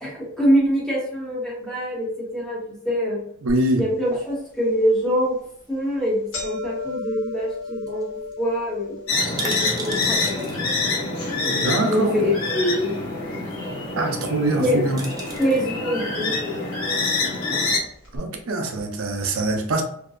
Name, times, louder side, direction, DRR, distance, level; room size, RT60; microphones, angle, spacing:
voice 1, 0.0-2.6 2.8-3.2 3.8-5.3 5.7-9.0 9.4-10.5 10.8-13.0 14.6-14.8 15.4-16.6 17.4-17.6, equal, 5° left, -6 dB, 0.9 m, -24 dB
voice 2, 3.4-3.8 11.5-12.1 14.0-15.0 18.1-19.8, right 2 dB, 80° right, 3 dB, 0.5 m, -23 dB
sound 1, 3.5-3.6 4.1-4.2 5.0-5.2 5.6-5.7 5.9-14.1 14.4-15.2 16.0-16.1 17.0-17.1 17.4-17.5 18.0-18.2, left 3 dB, 60° left, 0.9 m, -38 dB
sound 2, 6.5-7.3 7.6-7.7 7.9-8.0 8.3-8.4 9.1-10.6 11.7-11.8 14.4-14.6 15.0-15.6 16.8-17.1 17.8-18.5 18.7-18.8, right 4 dB, 20° right, 0.3 m, -36 dB
sound 3, 9.1-17.8, left 3 dB, 85° left, 0.9 m, -26 dB
2.7 x 2.1 x 2.3 m, 0.67 s
head